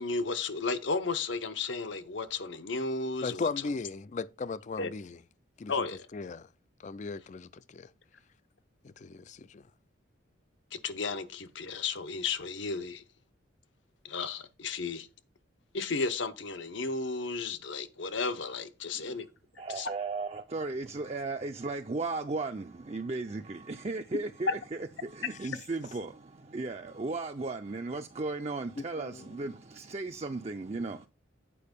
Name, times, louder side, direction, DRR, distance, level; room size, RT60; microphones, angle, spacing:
voice 1, 0.0-3.5 4.8-4.9 5.7-6.1 10.7-13.0 14.0-15.1 15.7-19.3 19.7-19.9, left 4 dB, 65° left, 0.8 m, -33 dB
voice 2, 3.2-5.2 5.6-5.7 6.1-6.5 6.8-7.9 8.8-9.6 28.8-29.2, left 4 dB, 35° left, 0.3 m, -37 dB
voice 3, 19.6-26.1 26.4-31.1, right 3 dB, 35° right, 0.5 m, -36 dB
8.5 x 5.1 x 5.2 m
head